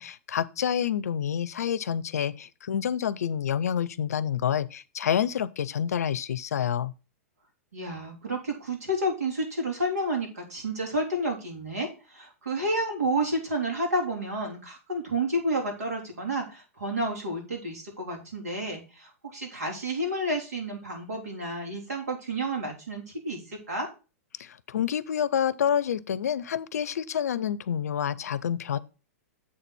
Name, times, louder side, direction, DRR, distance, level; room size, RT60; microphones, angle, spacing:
voice 1, 0.0-6.9 24.4-28.8, left 9 dB, 80° left, 0.5 m, -28 dB
voice 2, 7.7-23.9, right 1 dB, 85° right, 3.4 m, -30 dB
7.6 x 4.1 x 6.0 m
hypercardioid pair, 120°, 8 cm